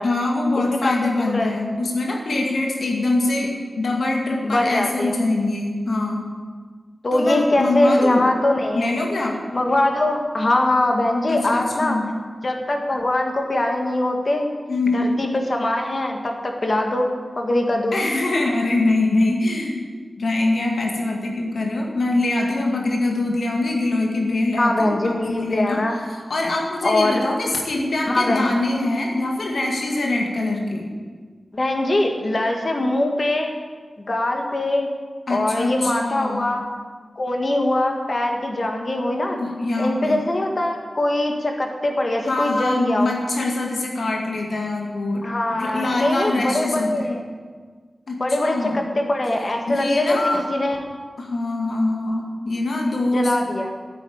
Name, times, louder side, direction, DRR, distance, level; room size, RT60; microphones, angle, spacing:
voice 1, 0.0-6.3 7.1-8.2 8.7-9.4 11.3-12.1 14.7-15.1 17.9-19.8 20.2-25.8 26.1-30.9 35.3-36.5 39.4-40.2 42.3-47.2 48.1-48.8 49.7-50.4 51.2-53.3, left 2 dB, 75° left, 0 dB, 2.1 m, -23 dB
voice 2, 0.8-1.5 4.4-5.2 7.0-9.0 9.5-12.0 12.4-14.5 14.9-18.0 24.6-26.0 26.8-27.2 28.1-28.5 31.5-33.5 34.0-34.9 35.3-36.6 37.2-39.4 39.8-43.1 45.2-47.3 48.2-50.8 53.1-53.7, left 1 dB, 45° left, 3 dB, 1.9 m, -22 dB
9.6 x 8.9 x 8.8 m, 1.5 s
wide cardioid pair, 85°, 0 cm